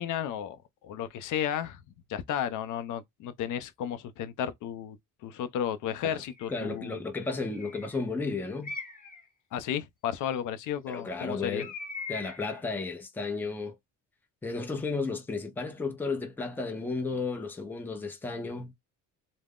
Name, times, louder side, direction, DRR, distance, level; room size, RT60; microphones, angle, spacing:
voice 1, 0.0-1.8 2.1-5.0 5.2-7.0 9.5-11.6, left 9 dB, 65° left, 0.5 m, -33 dB
Bird, 6.2-6.7 7.5-8.0 8.6-9.2 11.6-12.6, left 4 dB, 25° left, 0.9 m, -41 dB
voice 2, 6.5-8.7 10.9-11.7 12.1-13.7 14.4-18.7, left 3 dB, 5° left, 0.5 m, -33 dB
2.3 x 2.0 x 3.4 m
cardioid pair, 140°, 34 cm